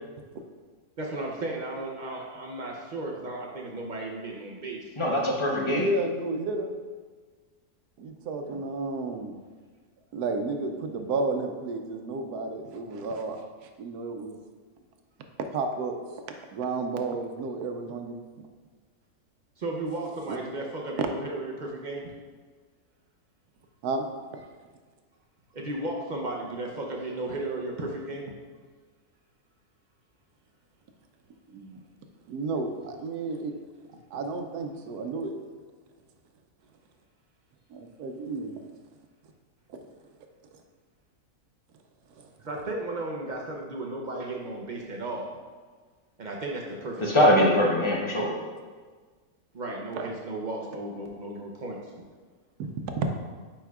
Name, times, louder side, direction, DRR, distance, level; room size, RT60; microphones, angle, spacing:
voice 1, 1.0-4.9 19.6-22.0 25.5-28.3 42.4-45.3 46.2-47.4 49.5-51.8, right 2 dB, 55° right, -1 dB, 0.5 m, -34 dB
voice 2, 5.0-5.9 47.0-48.3, left 1 dB, 30° left, -2 dB, 0.6 m, -22 dB
voice 3, 5.5-6.8 8.0-9.3 10.1-13.4 13.6-14.3 15.5-15.9 16.5-18.5 20.3-20.4 21.0-21.1 23.8-24.0 24.3-24.4 31.5-31.8 32.3-33.5 34.1-35.3 37.7-38.5 39.7-39.8 42.2-42.3 50.0-50.1 52.6-53.1, right 3 dB, 90° right, 5 dB, 1.1 m, -32 dB
9.1 x 4.4 x 2.4 m, 1.5 s
omnidirectional pair, 1.6 m